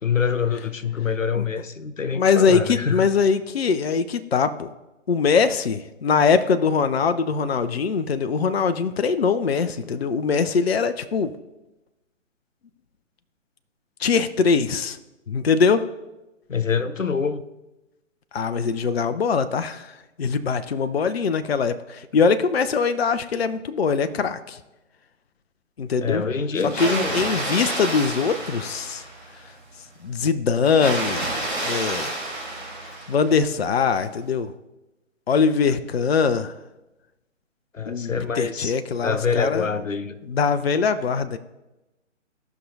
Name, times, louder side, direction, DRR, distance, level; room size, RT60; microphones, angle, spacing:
voice 1, 0.0-3.1 16.5-17.4 26.0-27.2 37.7-38.8 39.0-40.2, left 6 dB, 85° left, 11 dB, 0.7 m, -25 dB
voice 2, 2.1-4.7 5.1-11.3 14.0-15.0 15.3-15.9 18.3-24.6 25.8-26.2 26.8-29.0 30.0-31.3 31.6-32.1 33.1-34.5 35.3-36.5 37.9-39.7 40.3-41.4, left 5 dB, 55° left, 11 dB, 0.5 m, -22 dB
Water, 26.6-29.4 30.6-33.5, right 2 dB, ahead, 3.5 m, -29 dB
16.5 x 5.8 x 2.7 m, 1.0 s
figure-of-eight pair, 140°, 38 cm